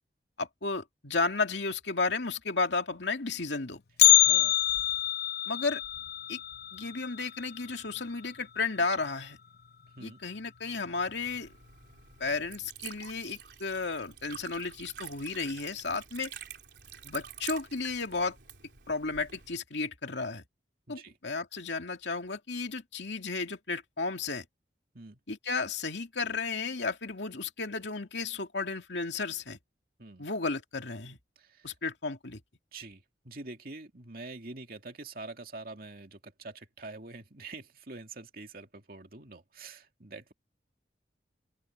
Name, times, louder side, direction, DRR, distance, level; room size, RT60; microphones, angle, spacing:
voice 1, 0.4-3.8 5.5-5.8 6.3-6.4 6.7-9.4 10.0-11.5 12.2-16.3 17.0-18.4 18.9-20.4 20.9-24.4 25.3-29.6 30.2-31.2 31.6-32.4, left 4 dB, 80° left, 2.5 m, -33 dB
Bell, 4.0-8.1 8.4-8.5 9.0-9.1 9.9-10.0 10.7-11.0 11.4-11.5, left 17 dB, 55° left, 0.8 m, -25 dB
voice 2, 4.2-4.6 10.0-10.2 20.9-21.2 24.9-25.2 30.0-30.3 31.4-31.7 32.7-40.3, right 3 dB, 55° right, 2.5 m, -45 dB
Liquid, 11.0-19.6, right 8 dB, 70° right, 3.6 m, -47 dB
open air
head